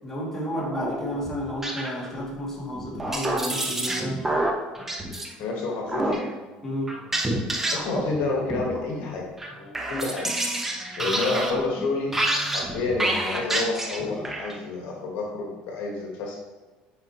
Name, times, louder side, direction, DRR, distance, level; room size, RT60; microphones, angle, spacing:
voice 1, 0.0-4.2 6.6-7.0, equal, 10° left, -5 dB, 2.2 m, -32 dB
sound 1, 0.6-2.3 2.7-5.3 5.9-6.3 6.9-8.2 8.5-9.1 9.4-14.6, right 1 dB, 10° right, 0.9 m, -28 dB
voice 2, 5.4-6.3 7.7-9.3 9.6-10.3 11.0-12.2 12.5-16.4, left 3 dB, 70° left, -1 dB, 1.4 m, -29 dB
7.9 x 5.1 x 2.9 m, 1.2 s
cardioid pair, 110°, 3 cm